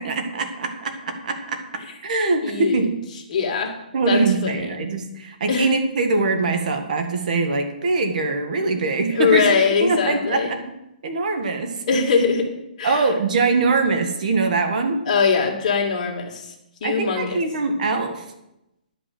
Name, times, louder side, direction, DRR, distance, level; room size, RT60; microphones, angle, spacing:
voice 1, 0.0-2.9 3.9-9.5 9.8-10.7 11.0-12.0 12.8-15.0 16.8-18.2, right 3 dB, 55° right, 6 dB, 1.7 m, -23 dB
voice 2, 2.4-2.8 3.3-3.7 4.1-4.7 5.5-5.7 9.1-10.5 11.9-12.5 12.8-13.0 15.1-16.5 16.8-17.4, left 5 dB, 45° left, 1 dB, 2.3 m, -21 dB
11.0 x 5.5 x 7.8 m, 0.88 s
hypercardioid pair, 160°, 5 cm